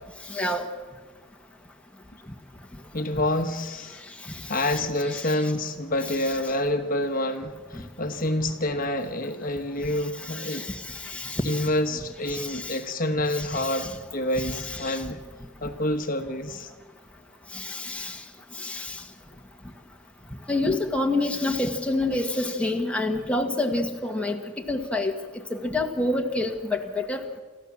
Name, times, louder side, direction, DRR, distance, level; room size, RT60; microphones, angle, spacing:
voice 1, 0.3-0.7 4.2-4.8 5.1-5.5 10.2-11.7 12.3-12.8 13.3-13.9 14.4-15.0 17.5-18.2 18.5-19.0 20.5-24.4 24.7-27.2, left 2 dB, 5° left, 2 dB, 1.6 m, -28 dB
voice 2, 2.9-4.0 4.5-10.7 11.4-15.2 15.6-16.7, left 1 dB, 45° left, 6 dB, 1.2 m, -27 dB
28.0 x 14.0 x 7.3 m, 1.4 s
head